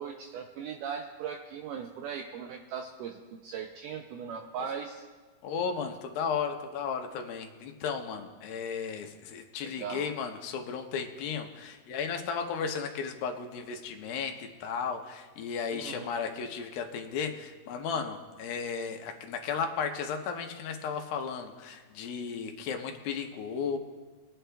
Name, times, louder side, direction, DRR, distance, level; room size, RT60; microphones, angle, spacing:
voice 1, 0.0-5.0 9.6-10.1 15.7-16.1, right 7 dB, 85° right, 3 dB, 1.8 m, -39 dB
voice 2, 5.4-23.8, left 6 dB, 80° left, 4 dB, 2.6 m, -34 dB
23.5 x 8.9 x 2.3 m, 1.4 s
omnidirectional pair, 4.3 m